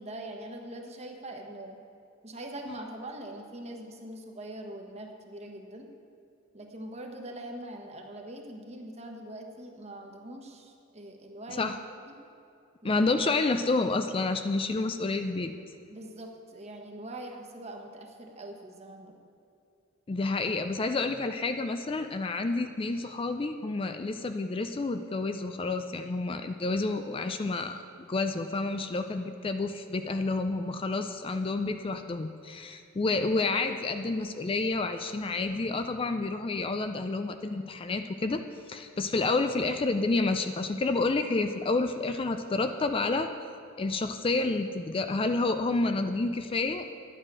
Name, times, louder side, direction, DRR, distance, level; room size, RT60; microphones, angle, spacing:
voice 1, 0.0-1.8 2.2-5.9 6.5-11.7 12.1-12.2 12.8-13.0 15.9-19.2, right 1 dB, 35° right, 3 dB, 1.2 m, -42 dB
voice 2, 12.8-15.5 20.1-43.3 43.8-46.9, left 3 dB, 25° left, 8 dB, 0.4 m, -29 dB
11.0 x 9.1 x 6.1 m, 2.5 s
head